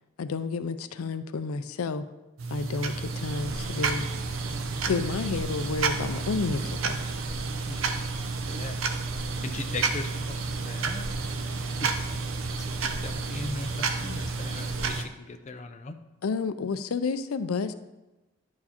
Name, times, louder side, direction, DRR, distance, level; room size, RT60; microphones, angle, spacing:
voice 1, 0.2-2.0 2.5-4.1 4.8-7.0 16.2-17.7, left 4 dB, 90° left, 12 dB, 0.4 m, -30 dB
sound 1, 2.4-15.0, right 4 dB, 70° right, 0.7 m, -31 dB
voice 2, 7.7-8.0 8.5-8.8 9.2-10.3 10.6-11.4 11.8-12.1 12.4-16.0, left 3 dB, 35° left, 7 dB, 0.5 m, -39 dB
10.5 x 4.7 x 4.3 m, 1.1 s
head